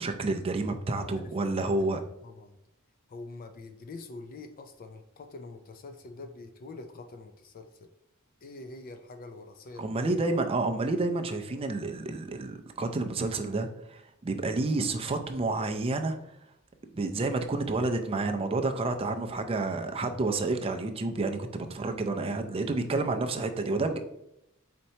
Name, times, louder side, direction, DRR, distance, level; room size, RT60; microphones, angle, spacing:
voice 1, 0.0-2.0 9.8-16.2 16.9-24.0, right 3 dB, 25° right, 5 dB, 0.4 m, -29 dB
voice 2, 2.2-2.6 3.1-7.9 8.4-9.9 19.3-19.4 21.7-21.9, left 2 dB, 40° left, 6 dB, 0.4 m, -45 dB
4.3 x 4.3 x 2.8 m, 0.82 s
head